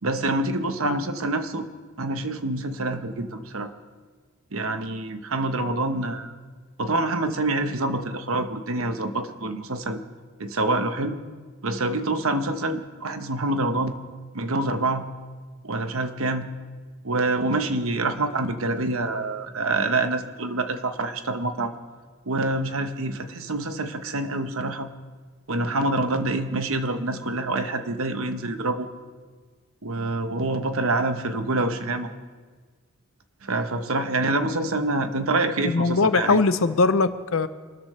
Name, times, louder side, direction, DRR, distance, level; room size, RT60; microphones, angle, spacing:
voice 1, 0.0-1.7 2.0-3.7 4.5-6.4 6.8-10.0 10.4-11.2 11.6-13.9 14.3-15.0 15.6-16.5 17.0-21.7 22.3-24.9 25.5-28.9 29.8-32.1 33.4-36.4, right 2 dB, 65° right, 8 dB, 1.0 m, -26 dB
voice 2, 35.6-37.5, left 3 dB, 60° left, 13 dB, 0.6 m, -21 dB
25.5 x 13.5 x 3.2 m, 1.5 s
head